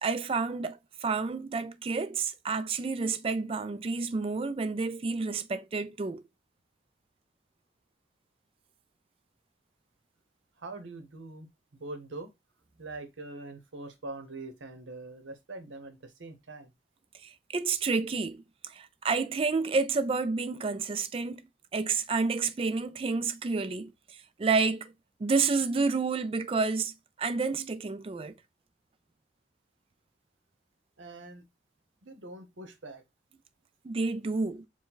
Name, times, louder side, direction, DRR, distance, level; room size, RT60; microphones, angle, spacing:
voice 1, 0.0-6.2 17.2-21.4 21.7-24.9 25.2-26.9 27.2-28.3 33.8-34.7, right 4 dB, 30° right, 0.3 m, -30 dB
voice 2, 10.6-11.5 11.7-12.3 12.8-16.7 31.0-31.4 32.0-33.0, right 2 dB, 75° right, 0.9 m, -43 dB
4.7 x 2.3 x 3.8 m
head